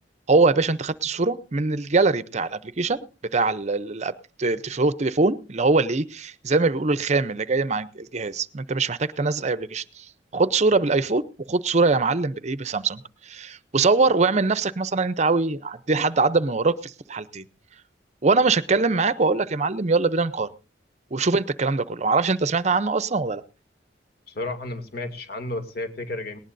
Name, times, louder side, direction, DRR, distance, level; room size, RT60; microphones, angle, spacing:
voice 1, 0.3-3.1 3.3-10.1 10.3-11.2 11.5-17.4 18.2-20.5 21.1-23.4, right 3 dB, 40° right, 15 dB, 0.6 m, -23 dB
voice 2, 24.3-26.4, left 2 dB, 55° left, 6 dB, 2.3 m, -32 dB
19.0 x 19.0 x 2.6 m, 0.36 s
head